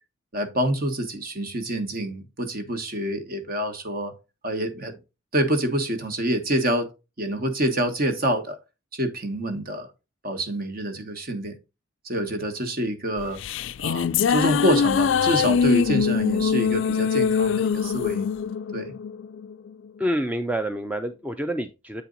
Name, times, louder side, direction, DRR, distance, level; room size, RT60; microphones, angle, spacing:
voice 1, 0.3-4.1 4.4-4.9 5.3-6.9 7.2-8.6 8.9-9.9 10.2-11.5 12.0-13.4 13.8-18.3 18.7-18.9, right 1 dB, 45° right, 1.3 m, -26 dB
sound 1, 13.2-19.7, left 6 dB, 60° left, 0.3 m, -23 dB
voice 2, 20.0-22.0, equal, 5° right, 0.5 m, -27 dB
8.3 x 4.4 x 3.9 m
head